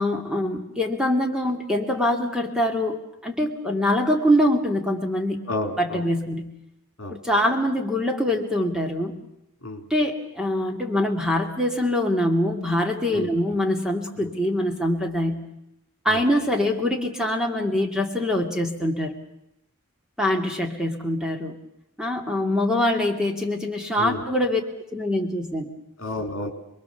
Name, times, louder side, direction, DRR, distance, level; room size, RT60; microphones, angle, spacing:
voice 1, 0.0-5.4 5.8-6.5 7.1-9.1 9.9-15.4 16.0-19.2 20.2-21.6 22.0-24.6 24.9-25.7, left 1 dB, 5° right, 1 dB, 2.3 m, -24 dB
voice 2, 5.5-6.0 7.0-7.2 9.6-9.8 13.1-13.3 16.1-16.2 24.0-24.2 26.0-26.5, left 2 dB, 60° left, 5 dB, 3.6 m, -30 dB
28.0 x 21.5 x 7.1 m, 0.84 s
head